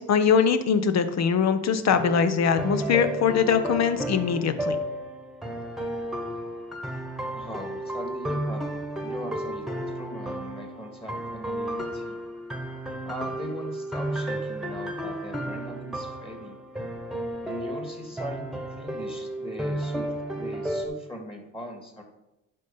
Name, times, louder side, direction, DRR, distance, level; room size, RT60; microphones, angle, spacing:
voice 1, 0.0-4.8, left 6 dB, 60° left, 10 dB, 0.8 m, -22 dB
sound 1, 1.9-20.9, right 1 dB, ahead, 1.3 m, -33 dB
voice 2, 7.3-8.6 9.0-12.2 13.0-16.6 17.4-22.0, equal, 20° left, 3 dB, 1.8 m, -40 dB
10.5 x 3.9 x 5.6 m, 0.96 s
cardioid pair, 90°, 30 cm